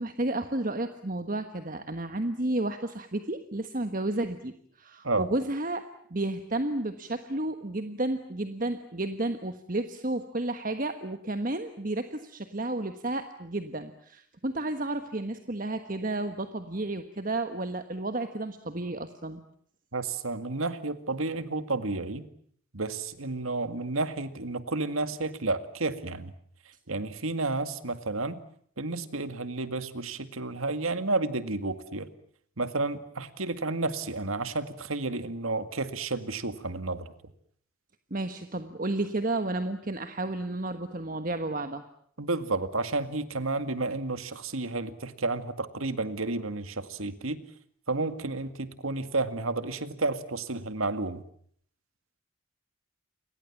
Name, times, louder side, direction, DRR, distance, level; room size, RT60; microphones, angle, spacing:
voice 1, 0.0-19.4 38.1-41.8, right 2 dB, 40° right, 8 dB, 1.4 m, -32 dB
voice 2, 19.9-22.3 22.7-26.3 26.9-28.4 28.8-32.1 32.6-37.1 42.2-47.4 47.9-51.2, right 3 dB, 90° right, 11 dB, 2.0 m, -31 dB
29.5 x 23.0 x 7.2 m, 0.63 s
head